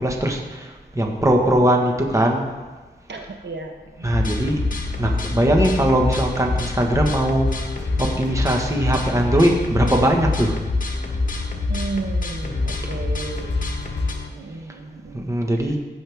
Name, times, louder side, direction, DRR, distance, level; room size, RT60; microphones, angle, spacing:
voice 1, 0.0-2.5 4.0-4.6 5.0-7.5 8.0-10.6 15.1-15.8, right 1 dB, 15° right, 1 dB, 1.4 m, -20 dB
voice 2, 3.1-4.1 11.7-13.6 14.3-15.2 15.6-15.7, right 3 dB, 75° right, 3 dB, 1.0 m, -33 dB
sound 1, 4.0-14.1, left 2 dB, 45° left, 1.4 m, -26 dB
sound 2, 4.4-14.3, left 4 dB, 70° left, 1.0 m, -36 dB
15.5 x 6.4 x 3.5 m, 1.2 s
wide cardioid pair, 85°, 19 cm